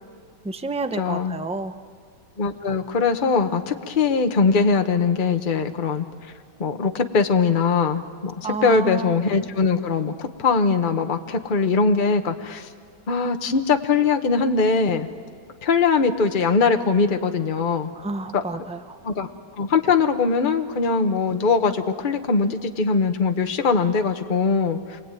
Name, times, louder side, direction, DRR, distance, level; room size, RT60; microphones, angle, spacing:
voice 1, 0.4-1.8 8.4-9.2 17.9-19.0, right 3 dB, 10° right, 9 dB, 0.4 m, -30 dB
voice 2, 1.0-1.4 2.4-6.0 6.6-12.7 13.1-15.1 15.6-17.9 18.3-18.4 19.0-19.3 19.6-25.0, left 4 dB, 30° left, 6 dB, 1.1 m, -21 dB
28.5 x 22.5 x 9.1 m, 2.1 s
omnidirectional pair, 1.9 m